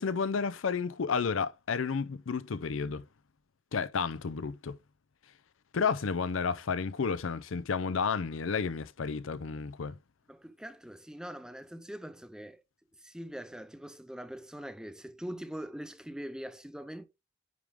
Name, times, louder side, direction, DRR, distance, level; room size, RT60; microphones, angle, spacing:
voice 1, 0.0-3.0 3.7-4.8 5.7-10.0, left 5 dB, 85° left, 0.5 m, -31 dB
voice 2, 10.3-12.6 13.0-17.1, equal, 5° right, 0.4 m, -43 dB
9.5 x 3.5 x 3.6 m
head